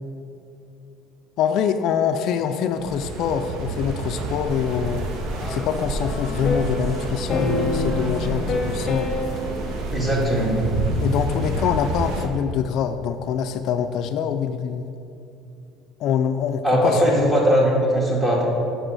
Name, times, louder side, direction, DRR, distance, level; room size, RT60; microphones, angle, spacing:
voice 1, 1.4-5.1 5.5-9.1 11.0-14.9 16.0-17.3, left 8 dB, 55° left, 8 dB, 0.4 m, -25 dB
sound 1, 2.7-12.3, right 2 dB, 60° right, 1.0 m, -29 dB
sound 2, 4.5-11.7, left 2 dB, 10° left, 1.3 m, -38 dB
sound 3, 5.5-10.0, left 2 dB, 35° left, 0.8 m, -28 dB
voice 2, 9.9-10.6 16.6-18.5, equal, 20° right, -3 dB, 2.0 m, -19 dB
7.8 x 6.2 x 6.3 m, 2.7 s
cardioid pair, 155°, 0 cm